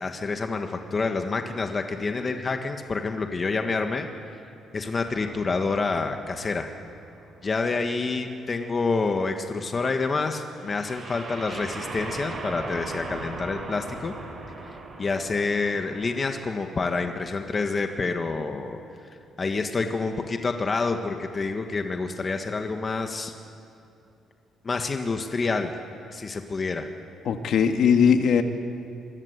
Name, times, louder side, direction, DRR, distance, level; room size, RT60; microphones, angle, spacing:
voice 1, 0.0-4.1 4.7-6.7 7.4-14.1 14.7-18.8 19.4-23.3 24.6-25.7 26.1-26.9, left 4 dB, 30° left, 5 dB, 1.6 m, -28 dB
sound 1, 5.0-7.8 10.6-17.4, right 3 dB, 40° right, 6.8 m, -39 dB
voice 2, 27.3-28.4, left 7 dB, 60° left, 6 dB, 1.9 m, -19 dB
27.0 x 22.0 x 8.2 m, 2.7 s
cardioid pair, 130°, 0 cm